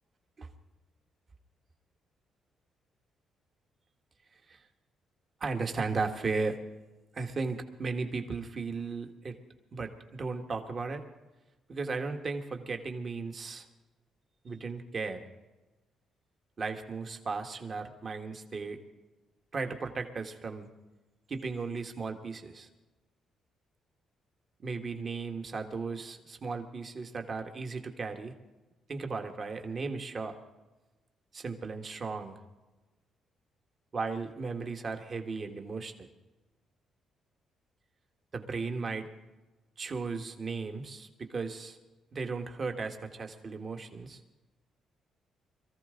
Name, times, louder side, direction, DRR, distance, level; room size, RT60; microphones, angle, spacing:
voice 1, 5.4-6.6 7.1-9.4 9.7-11.0 11.7-13.7 14.4-15.2 16.6-18.8 19.5-20.7 21.3-22.7 24.6-28.3 28.9-30.4 31.3-32.4 33.9-35.9 38.3-39.1 39.8-41.8 42.1-44.2, right 4 dB, 45° right, 4 dB, 1.6 m, -36 dB
22.5 x 14.5 x 3.9 m, 1.1 s
cardioid pair, 90°, 0 cm